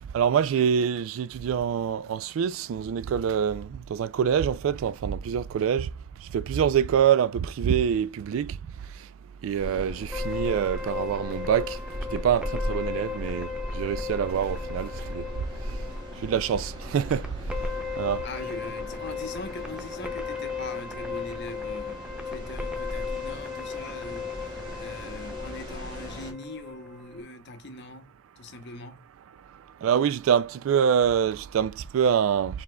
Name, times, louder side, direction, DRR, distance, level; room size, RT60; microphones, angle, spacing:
voice 1, 0.0-5.9 6.2-9.1 9.4-11.8 12.1-15.3 15.6-17.7 18.0-18.3 29.4-32.6, right 8 dB, 75° right, 0.3 m, -26 dB
sound 1, 9.6-26.3, equal, 20° right, 1.5 m, -37 dB
sound 2, 10.1-27.2, left 6 dB, 5° right, 0.5 m, -36 dB
voice 2, 18.2-22.0 22.3-29.1, left 2 dB, 55° left, 0.8 m, -41 dB
4.9 x 3.5 x 2.3 m
head